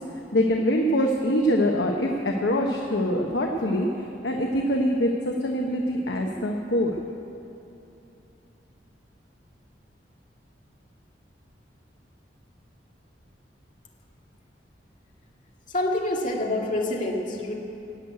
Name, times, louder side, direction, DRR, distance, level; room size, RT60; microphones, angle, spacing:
voice 1, 0.3-3.9 4.2-7.0, equal, 75° left, 1 dB, 1.0 m, -24 dB
voice 2, 15.7-17.5, left 1 dB, 45° left, -1 dB, 1.9 m, -26 dB
17.0 x 6.5 x 9.1 m, 2.9 s
head